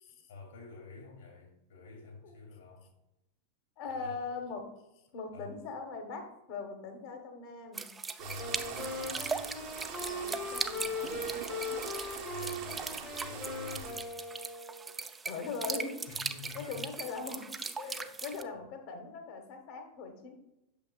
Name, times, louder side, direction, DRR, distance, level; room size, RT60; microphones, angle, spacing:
voice 1, 0.3-2.9 3.9-4.2 5.3-5.5 8.2-9.5 12.3-14.2 16.1-16.8 17.8-18.2, left 4 dB, 65° left, 1 dB, 2.2 m, -48 dB
voice 2, 3.8-4.7 5.1-7.9 10.1-11.2 15.3-16.0 16.5-20.3, left 4 dB, 45° left, 4 dB, 1.2 m, -41 dB
sound 1, 7.7-18.4, right 4 dB, 15° right, 0.3 m, -40 dB
sound 2, 8.2-13.9, right 6 dB, 40° right, 0.9 m, -44 dB
Wind instrument woodwind instrument, 8.4-15.0, left 2 dB, 25° left, 1.1 m, -40 dB
8.2 x 6.6 x 2.3 m, 0.88 s
figure-of-eight pair, 90°, 0 cm